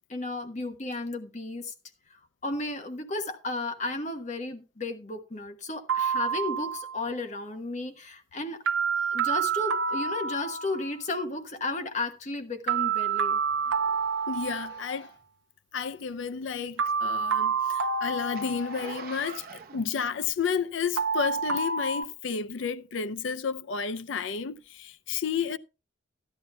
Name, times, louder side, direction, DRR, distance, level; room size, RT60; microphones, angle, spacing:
voice 1, 0.1-1.7 2.1-8.6 9.0-13.4, left 2 dB, 40° left, 1.2 m, -34 dB
sound 1, 5.9-7.0 8.7-11.0 12.7-15.0 16.8-19.1 21.0-22.0, right 6 dB, 80° right, 0.5 m, -28 dB
Zipper (clothing), 10.8-10.9 11.3-11.4 11.8-11.9 12.2-12.3 12.6-12.7 13.4-15.4 16.1-16.2 17.2-17.3, left 1 dB, 60° left, 6.6 m, -56 dB
voice 2, 14.3-15.1 15.7-25.6, left 6 dB, 75° left, 0.5 m, -31 dB
Zipper (clothing) 2, 16.0-20.9 21.5-21.6, right 5 dB, 50° right, 0.9 m, -44 dB
15.0 x 11.0 x 2.3 m
head